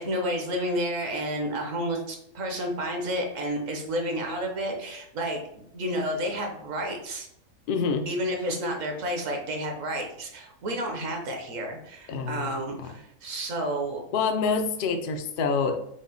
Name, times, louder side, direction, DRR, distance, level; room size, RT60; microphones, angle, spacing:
voice 1, 0.0-5.4 5.7-7.3 8.1-14.0, equal, 65° right, 2 dB, 1.1 m, -30 dB
voice 2, 7.7-8.1 12.1-12.5 12.8-12.9 14.1-15.8, left 5 dB, 85° left, 6 dB, 0.4 m, -26 dB
5.3 x 2.1 x 3.8 m, 0.75 s
omnidirectional pair, 1.5 m